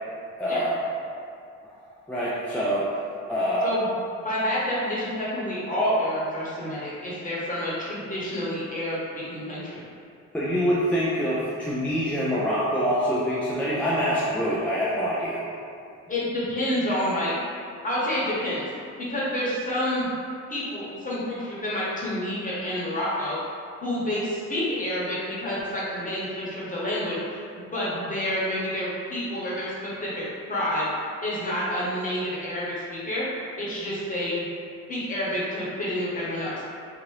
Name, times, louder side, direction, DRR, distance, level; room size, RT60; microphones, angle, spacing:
voice 1, 0.4-0.8 1.7-1.8 2.1-2.9 3.3-3.7 10.3-15.4, equal, 5° left, -9 dB, 0.4 m, -25 dB
voice 2, 4.2-9.8 16.1-17.3 17.8-18.7 19.0-20.1 20.5-23.4 23.8-27.4 27.7-30.9 31.2-33.2 33.6-34.4 34.9-36.6, left 1 dB, 25° left, -8 dB, 1.1 m, -28 dB
2.7 x 2.5 x 3.1 m, 2.5 s
cardioid pair, 90°, 30 cm